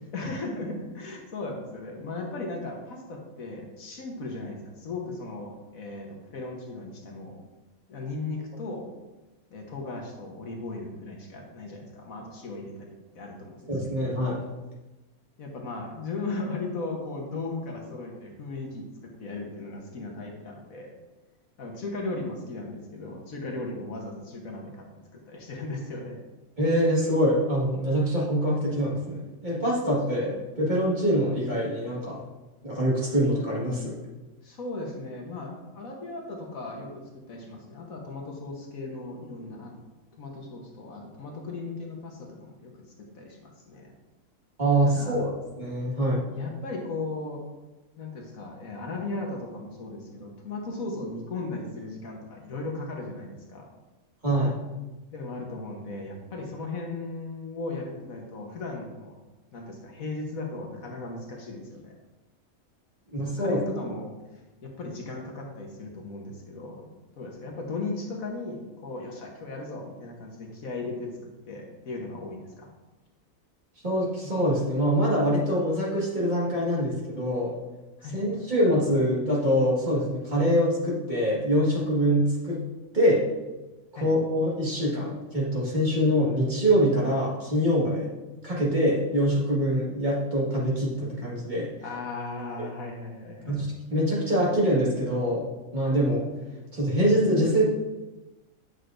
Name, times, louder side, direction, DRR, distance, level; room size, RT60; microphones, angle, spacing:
voice 1, 0.1-7.3 7.9-8.8 9.5-14.1 15.4-21.0 21.6-24.8 25.1-26.2 34.4-37.0 37.3-39.7 40.1-42.7 43.0-43.9 44.8-45.3 46.3-47.4 48.0-53.7 55.1-59.2 59.5-61.9 63.2-64.1 64.6-72.7 78.0-78.3 83.9-84.1 91.8-93.6, left 2 dB, 70° left, 0 dB, 1.5 m, -37 dB
voice 2, 13.7-14.4 26.6-32.2 32.6-34.0 44.6-45.3 45.6-46.2 54.2-54.5 63.1-63.6 73.8-77.5 78.1-82.6 82.9-83.2 84.0-88.1 88.4-91.7 93.5-95.5 95.7-96.3 96.7-97.6, equal, 30° right, -6 dB, 1.9 m, -24 dB
8.2 x 6.3 x 2.6 m, 1.1 s
omnidirectional pair, 1.5 m